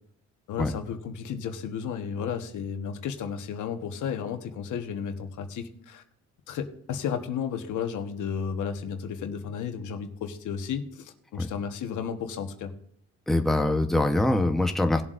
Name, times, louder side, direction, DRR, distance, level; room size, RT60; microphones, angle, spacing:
voice 1, 0.5-6.0 6.5-12.7, left 7 dB, 80° left, 6 dB, 1.3 m, -33 dB
voice 2, 13.3-15.0, left 1 dB, ahead, 5 dB, 1.0 m, -23 dB
19.0 x 7.4 x 2.6 m, 0.69 s
cardioid pair, 90°, 30 cm